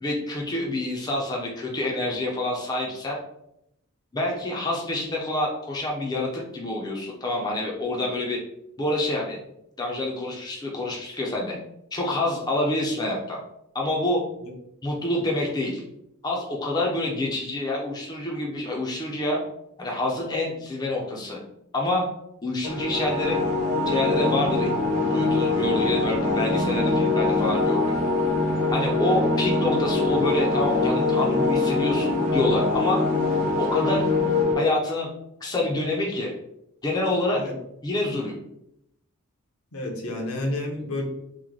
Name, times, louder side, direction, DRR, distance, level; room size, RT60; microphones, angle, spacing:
voice 1, 0.0-3.2 4.1-8.4 8.8-9.4 9.8-11.6 11.9-13.4 13.7-14.2 14.8-15.8 16.2-19.4 19.8-21.4 21.7-22.1 22.4-23.4 23.9-24.7 25.1-28.0 28.7-33.0 33.6-34.1 34.5-35.1 35.4-36.3 36.8-37.4 37.8-38.4, left 2 dB, 20° left, -2 dB, 0.5 m, -27 dB
sound 1, 22.6-34.5, left 3 dB, 35° right, 0.8 m, -23 dB
voice 2, 39.7-41.0, left 1 dB, 70° left, 1 dB, 0.7 m, -30 dB
3.0 x 2.1 x 3.7 m, 0.79 s
head